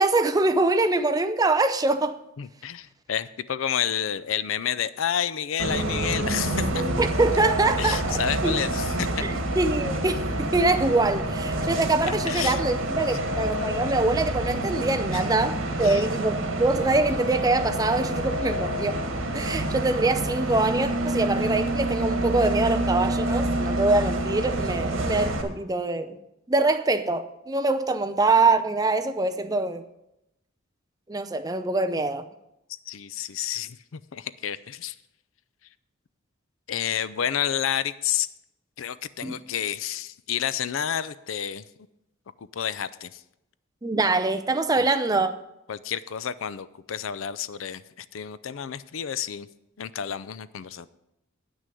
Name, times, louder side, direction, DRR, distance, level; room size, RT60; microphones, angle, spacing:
voice 1, 0.0-2.2 7.0-8.6 9.2-19.0 19.3-26.2 26.5-29.8 31.1-32.3 39.2-39.4 43.8-45.4, right 2 dB, 20° right, 0.6 m, -24 dB
voice 2, 2.4-6.9 7.8-9.2 12.1-12.6 13.1-13.2 15.1-15.3 15.8-16.1 32.9-34.9 36.7-38.3 38.8-41.6 42.5-43.2 44.8-44.9 45.7-49.5 49.8-50.9, left 9 dB, 80° left, 0.5 m, -30 dB
Bus, 5.6-25.4, right 1 dB, 80° right, 1.6 m, -27 dB
9.2 x 6.2 x 8.3 m
head